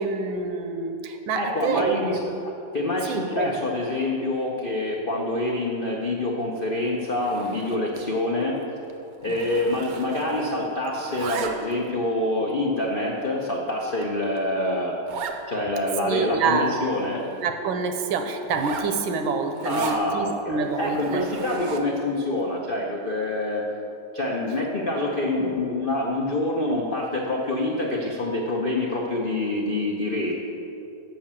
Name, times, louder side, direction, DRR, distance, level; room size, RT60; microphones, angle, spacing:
voice 1, 0.0-2.3 3.1-3.6 9.2-9.6 16.0-16.8 17.4-21.3 25.3-25.6, right 4 dB, 85° right, 6 dB, 1.5 m, -27 dB
voice 2, 1.3-2.2 2.7-8.6 9.2-15.0 15.5-17.2 19.6-23.6 24.1-30.4, left 1 dB, 80° left, -2 dB, 0.4 m, -26 dB
Zipper (clothing), 7.1-8.1 8.4-8.6 8.9-10.6 10.8-11.9 12.5-12.6 13.2-13.3 13.7-13.8 14.0-14.1 14.4-14.5 15.1-15.4 15.9-16.0 16.2-17.5 18.4-20.0 20.6-22.0, right 6 dB, 65° right, 0.9 m, -37 dB
7.6 x 5.8 x 7.4 m, 2.7 s
omnidirectional pair, 2.2 m